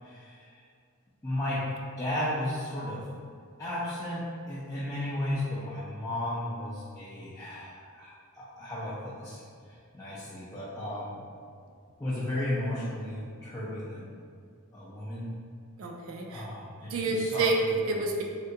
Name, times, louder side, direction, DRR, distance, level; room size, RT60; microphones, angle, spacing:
voice 1, 0.0-0.6 1.2-1.7 2.0-3.1 3.6-11.2 12.0-14.0 14.7-15.4 16.3-17.7, left 1 dB, 15° left, -10 dB, 0.4 m, -34 dB
voice 2, 15.8-16.4 16.9-17.6 17.9-18.2, right 3 dB, 65° right, 1 dB, 0.3 m, -29 dB
3.6 x 2.2 x 2.7 m, 2.2 s
head